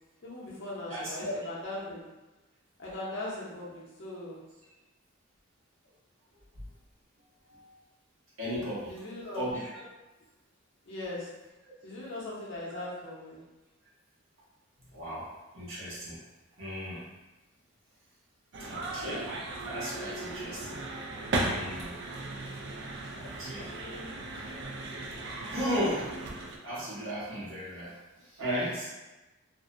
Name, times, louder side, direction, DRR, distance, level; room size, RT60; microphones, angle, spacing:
voice 1, 0.2-2.1 2.8-4.4 8.9-9.4 10.9-11.3 11.8-13.4, left 2 dB, 55° left, -6 dB, 0.7 m, -39 dB
voice 2, 0.9-1.3 7.5-7.7 8.4-9.0 9.3-9.8 12.7-12.8 14.9-16.2 16.6-17.0 18.6-19.3 19.6-20.8 21.5-21.9 23.1-23.7 24.4-24.6 25.5-26.1 26.6-28.9, equal, 70° right, -9 dB, 1.0 m, -36 dB
sound 1, 18.5-26.6, right 2 dB, 55° right, 0.3 m, -36 dB
2.5 x 2.1 x 2.4 m, 1.1 s
head